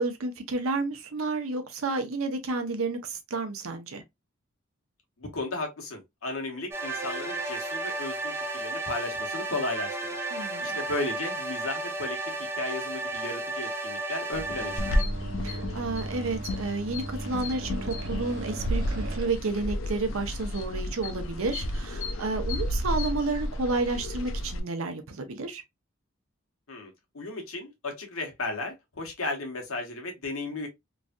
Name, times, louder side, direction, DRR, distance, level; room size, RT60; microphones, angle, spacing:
voice 1, 0.0-4.0 10.3-10.8 15.4-25.6, right 3 dB, 85° right, 0.7 m, -31 dB
voice 2, 5.2-10.2 10.6-12.2 12.6-15.0 26.7-30.7, left 2 dB, 90° left, 1.1 m, -35 dB
sound 1, 6.7-15.0, right 2 dB, 10° right, 0.6 m, -33 dB
sound 2, 14.3-19.3, right 2 dB, 55° right, 0.9 m, -38 dB
sound 3, 14.8-24.6, left 1 dB, 70° left, 0.5 m, -32 dB
3.1 x 2.6 x 2.2 m
head